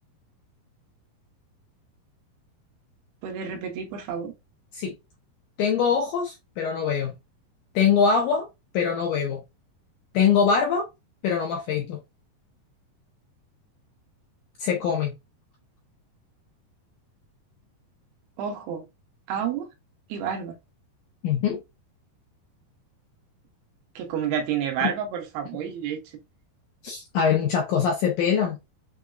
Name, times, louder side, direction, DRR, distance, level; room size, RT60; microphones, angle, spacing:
voice 1, 3.2-4.4 18.4-18.9 19.3-19.7 20.1-20.6 24.0-26.2, right 8 dB, 85° right, 2.8 m, -30 dB
voice 2, 5.6-7.1 7.8-8.5 8.7-9.4 10.1-10.9 11.2-12.0 14.6-15.1 21.2-21.6 24.8-24.9 26.8-28.6, left 6 dB, 80° left, 1.8 m, -23 dB
6.6 x 2.3 x 2.4 m
omnidirectional pair, 4.4 m